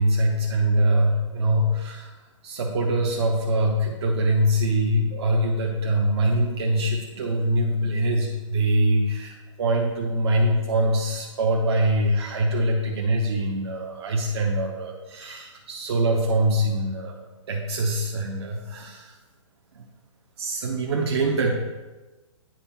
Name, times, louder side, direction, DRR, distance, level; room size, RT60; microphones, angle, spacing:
voice 1, 0.0-2.1 2.4-17.2 17.5-19.1 19.7-19.8 20.4-21.5, right 1 dB, 50° right, 0 dB, 0.8 m, -23 dB
8.7 x 3.5 x 4.3 m, 1.2 s
figure-of-eight pair, 125°, 17 cm